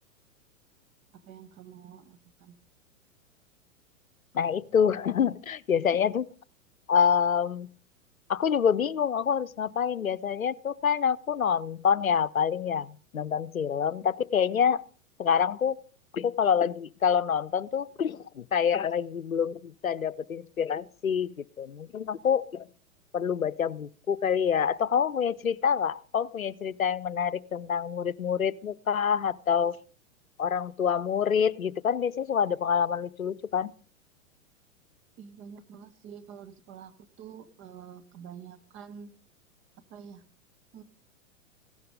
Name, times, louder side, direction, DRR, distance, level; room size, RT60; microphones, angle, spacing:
voice 1, 1.2-2.6 35.2-39.1 39.9-40.2 40.7-40.8, right 7 dB, 30° right, 1.3 m, -47 dB
voice 2, 4.3-6.2 6.9-7.7 8.3-14.8 15.2-15.8 16.1-22.7 23.1-29.8 30.4-33.7, left 7 dB, 80° left, 0.7 m, -27 dB
16.0 x 12.5 x 5.1 m
figure-of-eight pair, 100°, 41 cm